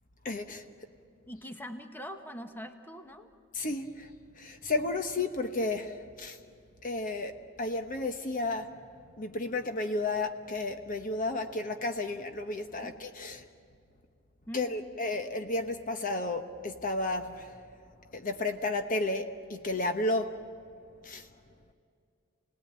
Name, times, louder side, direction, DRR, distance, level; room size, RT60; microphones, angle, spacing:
voice 1, 0.2-0.6 3.5-4.1 4.4-6.4 6.8-8.7 9.2-13.4 14.5-17.5 18.1-20.3 21.0-21.3, left 2 dB, 40° left, 6 dB, 1.0 m, -32 dB
voice 2, 1.3-3.3 12.8-12.9 14.5-14.9, equal, 10° left, 6 dB, 1.1 m, -43 dB
29.5 x 19.0 x 8.8 m, 2.3 s
head